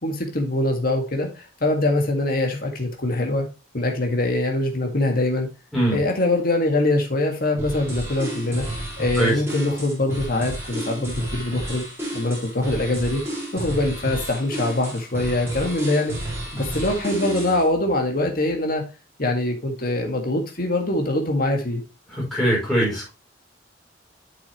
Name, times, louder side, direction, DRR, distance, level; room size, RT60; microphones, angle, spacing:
voice 1, 0.0-3.5 3.7-5.5 5.9-8.7 9.0-11.8 12.1-13.2 13.5-16.2 16.5-18.8 19.2-21.8, left 2 dB, 55° left, 2 dB, 1.9 m, -23 dB
sound 1, 7.6-17.7, right 1 dB, 15° right, 4.6 m, -31 dB
voice 2, 22.1-23.1, right 1 dB, ahead, -8 dB, 5.4 m, -22 dB
8.7 x 6.8 x 3.0 m, 0.28 s
head